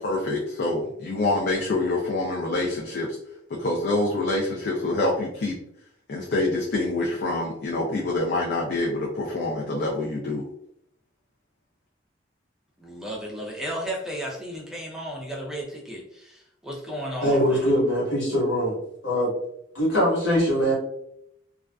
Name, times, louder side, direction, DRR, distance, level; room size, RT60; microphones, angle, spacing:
voice 1, 0.0-3.1 3.5-5.6 6.1-10.4, left 2 dB, 55° left, -2 dB, 0.4 m, -26 dB
voice 2, 12.8-17.7, equal, 5° right, -2 dB, 0.4 m, -34 dB
voice 3, 17.2-18.8 19.0-19.3 19.7-20.7, equal, 75° left, -5 dB, 1.2 m, -22 dB
2.4 x 2.3 x 2.2 m, 0.75 s
head